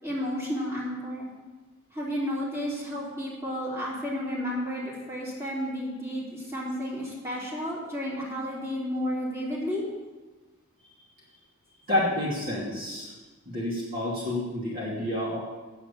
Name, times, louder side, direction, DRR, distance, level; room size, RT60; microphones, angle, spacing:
voice 1, 0.0-1.3 1.9-9.8, equal, 15° right, -7 dB, 3.6 m, -32 dB
voice 2, 11.9-13.1 13.5-15.4, left 1 dB, 45° right, -6 dB, 2.8 m, -29 dB
9.1 x 8.0 x 8.4 m, 1.2 s
head